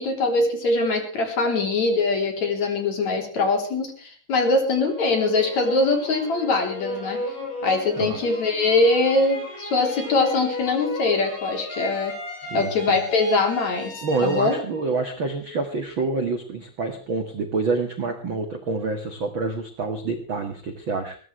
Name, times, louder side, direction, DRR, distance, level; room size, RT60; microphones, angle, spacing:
voice 1, 0.0-7.2 7.6-12.1 12.5-13.9 14.2-14.5, left 3 dB, 40° left, 4 dB, 4.3 m, -22 dB
sound 1, 4.8-15.8, left 2 dB, 70° left, 9.7 m, -36 dB
voice 2, 12.4-13.0 14.0-21.2, right 3 dB, 60° right, 5 dB, 1.2 m, -27 dB
20.5 x 17.5 x 3.3 m, 0.42 s
omnidirectional pair, 5.4 m